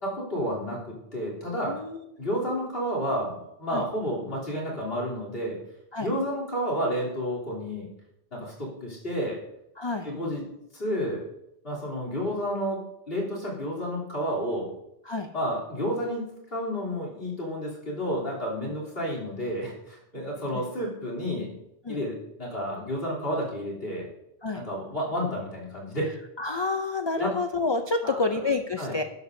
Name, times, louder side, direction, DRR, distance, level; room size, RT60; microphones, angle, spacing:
voice 1, 0.0-1.8 2.2-5.6 6.0-7.9 8.3-9.4 10.0-10.4 10.7-11.2 11.6-14.7 15.3-21.5 21.9-24.1 24.5-26.1 27.2-27.3 28.0-28.4 28.8-28.9, equal, 60° left, -4 dB, 3.6 m, -31 dB
voice 2, 1.7-2.1 3.7-3.8 5.9-6.1 9.8-10.1 15.0-15.3 20.5-20.6 21.8-22.0 24.4-24.6 26.4-29.0, left 3 dB, 40° left, 6 dB, 0.4 m, -28 dB
12.0 x 11.5 x 2.7 m, 0.83 s
omnidirectional pair, 1.1 m